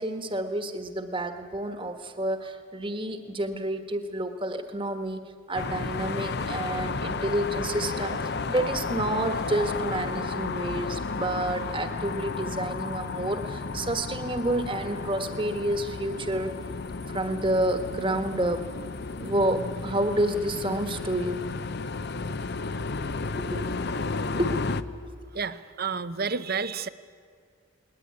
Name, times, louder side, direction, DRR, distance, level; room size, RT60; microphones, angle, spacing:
voice 1, 0.0-5.2 5.5-16.6 17.1-18.7 19.2-21.4 23.4-24.6 25.0-25.3, right 1 dB, 25° right, 8 dB, 1.4 m, -29 dB
sound 1, 5.5-24.8, left 4 dB, 50° left, 0.7 m, -33 dB
voice 2, 25.3-26.9, right 5 dB, 45° right, 14 dB, 0.7 m, -30 dB
20.0 x 19.5 x 9.7 m, 2.3 s
head